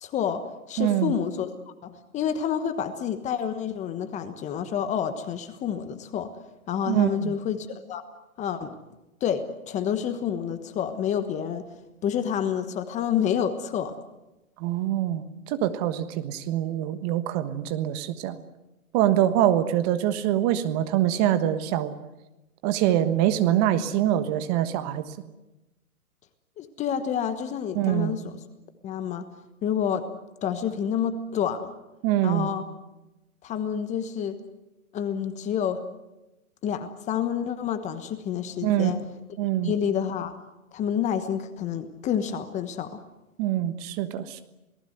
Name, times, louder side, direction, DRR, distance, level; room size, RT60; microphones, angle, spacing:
voice 1, 0.0-1.5 1.8-6.3 6.7-8.0 8.4-8.8 9.2-11.7 12.0-13.9 26.6-28.4 28.8-29.2 29.6-30.1 30.4-31.7 32.2-32.6 33.4-34.4 34.9-35.8 36.6-39.0 39.6-40.3 40.7-43.0, left 8 dB, 15° left, 10 dB, 1.2 m, -28 dB
voice 2, 0.8-1.1 6.9-7.3 14.6-18.4 18.9-21.9 22.6-25.0 27.7-28.2 32.0-32.5 38.6-38.9 39.4-39.7 43.4-44.4, right 12 dB, 30° right, 10 dB, 1.3 m, -24 dB
28.0 x 19.0 x 8.0 m, 1.0 s
hypercardioid pair, 135°, 43 cm